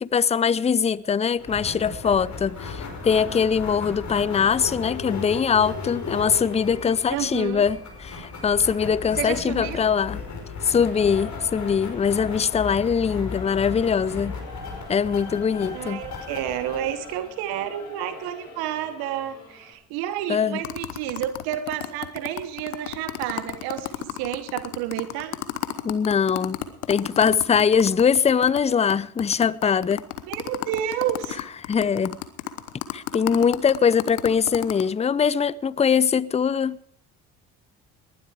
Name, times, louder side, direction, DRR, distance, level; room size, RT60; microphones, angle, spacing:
voice 1, 0.0-10.2 10.6-14.4 14.9-16.0 20.3-20.6 25.8-26.6 26.9-30.0 31.7-32.2 32.9-36.8, left 6 dB, 15° left, 0.5 m, -22 dB
sound 1, 1.4-17.9, left 4 dB, 45° left, 5.3 m, -36 dB
voice 2, 7.1-7.6 9.1-9.9 15.7-25.4 30.3-31.4, right 11 dB, 75° right, 1.3 m, -30 dB
Singing / Musical instrument, 10.8-19.7, left 3 dB, 65° left, 6.9 m, -44 dB
sound 2, 20.6-28.6 28.9-29.0 29.2-34.8, left 17 dB, 85° left, 1.2 m, -32 dB
19.5 x 11.5 x 4.9 m
hypercardioid pair, 65°, 38 cm